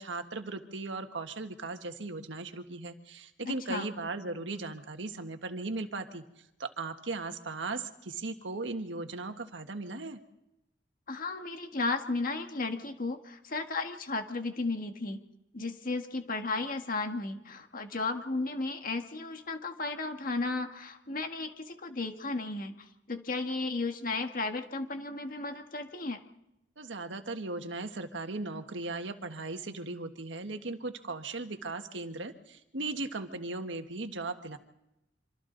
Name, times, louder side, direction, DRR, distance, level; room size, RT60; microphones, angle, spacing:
voice 1, 0.0-6.2 6.6-10.2 26.8-34.6, right 3 dB, 90° right, 6 dB, 1.6 m, -37 dB
voice 2, 3.4-3.9 11.1-15.2 15.5-22.7 23.1-26.2, left 3 dB, 50° left, 5 dB, 1.7 m, -34 dB
26.0 x 26.0 x 4.0 m, 0.90 s
head